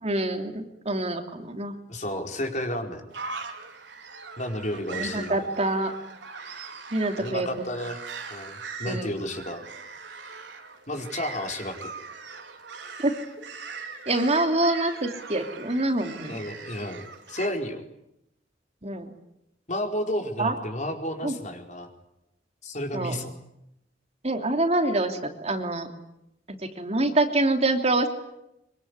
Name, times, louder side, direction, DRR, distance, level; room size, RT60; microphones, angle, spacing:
voice 1, 0.0-1.7 4.9-5.9 6.9-7.5 8.9-9.1 13.0-13.1 14.1-16.4 18.8-19.1 20.4-20.5 21.2-21.3 22.9-23.2 24.2-25.9 26.5-28.1, right 2 dB, 35° right, 5 dB, 3.0 m, -26 dB
voice 2, 1.9-3.0 4.4-5.4 7.2-8.0 8.3-9.6 10.9-11.9 16.3-17.8 19.7-21.9 22.6-23.3, left 1 dB, 45° left, 4 dB, 4.6 m, -32 dB
sound 1, 3.1-17.5, right 4 dB, 80° right, 4.2 m, -41 dB
25.0 x 24.0 x 9.7 m, 0.83 s
head